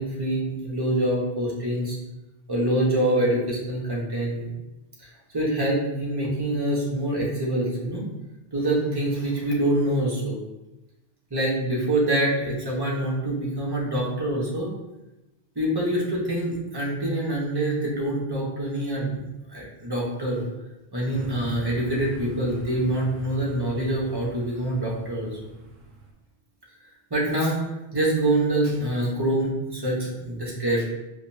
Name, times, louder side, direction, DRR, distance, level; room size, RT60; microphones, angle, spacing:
voice 1, 0.0-2.0 2.5-4.5 5.0-8.0 8.5-10.4 11.3-14.7 15.5-19.2 19.5-20.4 20.9-25.3 27.1-30.8, right 1 dB, 25° right, -5 dB, 1.0 m, -25 dB
sound 1, 21.1-26.1, right 4 dB, 55° right, 0.8 m, -42 dB
4.9 x 2.3 x 2.7 m, 0.96 s
omnidirectional pair, 1.0 m